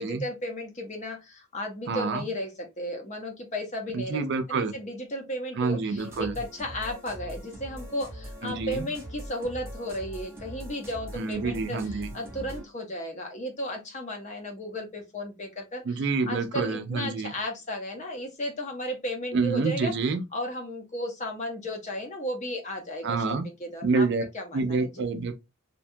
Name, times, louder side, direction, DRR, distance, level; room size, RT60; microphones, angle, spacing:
voice 1, 0.0-2.5 2.8-4.2 4.5-15.8 16.3-19.9 20.3-24.1 24.3-24.9, left 1 dB, 35° left, 0.6 m, -34 dB
voice 2, 1.9-2.3 3.9-4.7 5.6-6.4 8.4-8.9 11.1-12.1 15.8-17.3 19.3-20.2 23.0-23.5 23.8-24.2 24.5-25.4, right 4 dB, 55° right, 0.4 m, -27 dB
sound 1, 6.0-12.7, equal, 10° right, 0.6 m, -41 dB
2.5 x 2.2 x 2.6 m
head